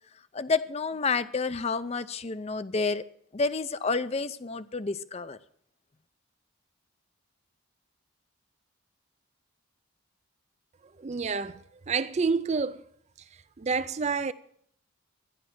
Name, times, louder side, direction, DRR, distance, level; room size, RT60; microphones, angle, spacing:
voice 1, 0.3-3.0 3.3-5.4, left 4 dB, 30° left, 0.5 m, -29 dB
voice 2, 11.0-12.8 13.6-14.3, right 5 dB, 30° right, 0.4 m, -28 dB
12.5 x 10.5 x 6.0 m
head